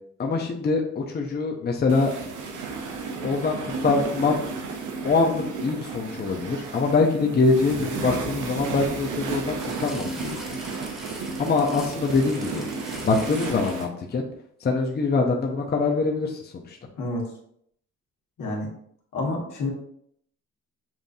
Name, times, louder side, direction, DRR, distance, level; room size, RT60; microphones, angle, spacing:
voice 1, 0.2-2.1 3.2-4.4 5.0-10.6 11.4-12.7 13.0-14.3 14.6-16.8, left 4 dB, 35° left, 0 dB, 0.7 m, -24 dB
sound 1, 1.9-13.9, right 4 dB, 85° right, 0.8 m, -33 dB
sound 2, 9.6-14.0 14.8-14.9, equal, ahead, 1.4 m, -43 dB
voice 2, 18.4-18.7 19.1-19.7, left 2 dB, 75° left, -1 dB, 1.5 m, -28 dB
7.2 x 2.5 x 2.7 m, 0.68 s
cardioid pair, 90°, 30 cm